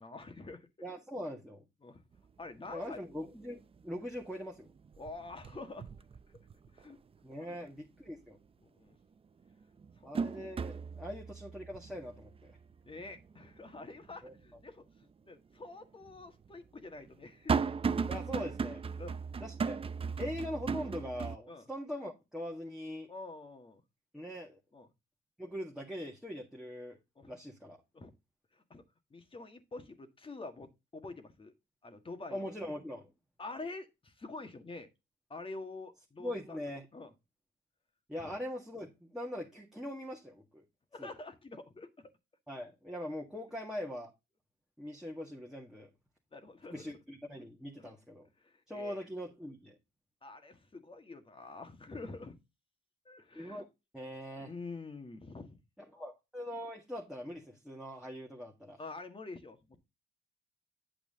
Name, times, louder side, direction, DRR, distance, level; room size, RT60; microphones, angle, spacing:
voice 1, 0.0-0.7 1.8-2.0 2.4-3.0 5.0-5.9 6.3-6.5 6.7-7.0 7.5-7.7 8.6-9.0 10.0-10.3 11.0-11.1 12.8-14.8 15.2-17.7 19.0-19.2 21.5-21.7 23.1-23.8 24.7-24.9 27.1-27.3 27.9-28.1 28.5-28.8 29.1-31.5 31.8-32.4 33.4-34.9 35.3-36.6 36.9-37.1 38.2-38.3 40.9-42.1 46.3-47.0 47.8-47.9 48.4-49.0 50.2-52.4 53.0-53.6 54.4-55.6 58.8-59.8, left 3 dB, 25° left, 1.7 m, -47 dB
voice 2, 0.8-1.6 2.7-4.7 7.2-8.4 10.0-12.3 14.2-14.3 18.1-18.8 19.4-19.8 20.2-23.1 24.1-24.6 25.4-27.0 27.3-27.8 32.3-33.1 36.2-36.9 38.1-40.6 41.0-41.1 42.5-44.1 44.8-45.9 46.7-48.3 48.7-49.8 53.4-53.7 53.9-54.5 55.9-58.8, equal, ahead, 1.8 m, -42 dB
sound 1, 2.2-2.3 2.7-3.2 3.6-4.4 4.7-6.9 7.3-7.4 8.9-9.0 9.5-14.6 15.0-15.1 16.0-21.4, right 5 dB, 30° right, 0.5 m, -37 dB
9.0 x 4.9 x 3.7 m
cardioid pair, 90°, 20 cm